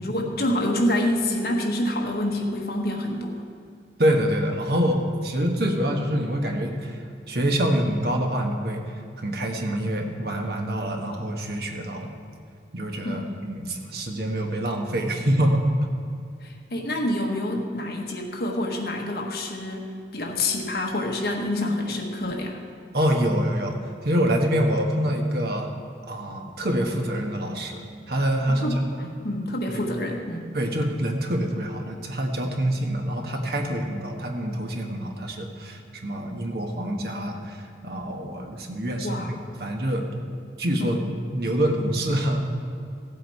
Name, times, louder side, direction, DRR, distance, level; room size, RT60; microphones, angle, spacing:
voice 1, 0.0-3.4 13.0-13.3 16.4-22.6 28.5-30.5 39.0-39.3 40.8-41.0, left 1 dB, 60° left, 1 dB, 1.4 m, -27 dB
voice 2, 4.0-8.8 9.2-12.1 12.7-15.6 22.9-23.8 24.0-25.7 26.0-29.1 29.7-29.8 30.5-39.2 39.6-40.1 40.6-41.0 41.3-42.4, equal, 60° right, 2 dB, 1.3 m, -26 dB
15.5 x 7.9 x 4.7 m, 2.3 s
head